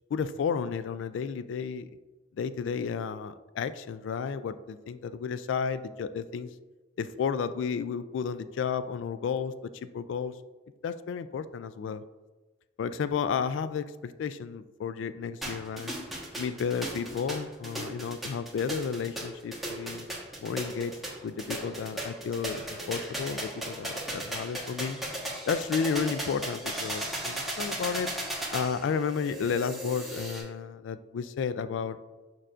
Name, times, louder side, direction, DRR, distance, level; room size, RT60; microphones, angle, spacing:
voice 1, 0.1-1.9 2.4-6.5 7.0-9.5 9.8-10.3 10.8-12.0 12.8-16.0 16.4-20.1 20.4-21.0 21.2-22.6 22.9-25.0 25.5-28.1 28.5-32.0, left 6 dB, 85° left, 14 dB, 0.3 m, -32 dB
sound 1, 15.4-30.4, right 1 dB, ahead, 1.2 m, -36 dB
6.7 x 6.0 x 2.5 m, 1.2 s
head